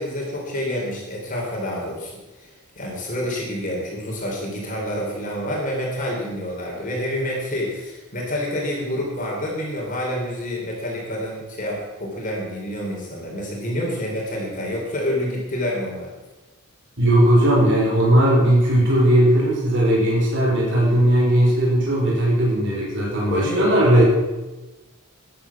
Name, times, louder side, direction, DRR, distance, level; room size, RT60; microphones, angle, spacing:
voice 1, 0.0-2.1 2.4-16.1 23.3-24.0, left 1 dB, 35° left, -2 dB, 3.9 m, -28 dB
voice 2, 17.0-24.0, right 1 dB, 55° right, -4 dB, 4.4 m, -17 dB
13.5 x 10.5 x 6.2 m, 1.1 s
head